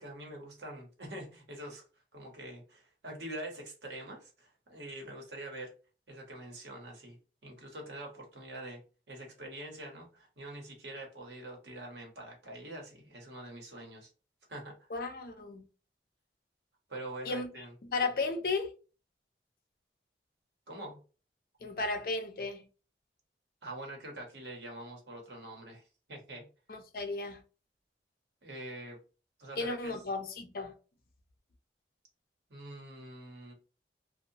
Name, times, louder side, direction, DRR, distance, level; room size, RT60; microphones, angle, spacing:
voice 1, 0.0-1.8 2.1-5.7 6.1-7.2 7.4-8.8 9.1-14.1 14.5-14.7 16.9-17.7 20.7-21.0 23.6-25.8 26.1-26.5 28.4-29.0 29.4-30.0 32.5-33.5, right 1 dB, 80° right, 1.0 m, -45 dB
voice 2, 14.9-15.6 17.3-17.5 17.9-18.7 21.6-22.6 26.7-27.4 29.6-30.7, left 3 dB, 55° left, 0.5 m, -34 dB
2.7 x 2.2 x 2.7 m
head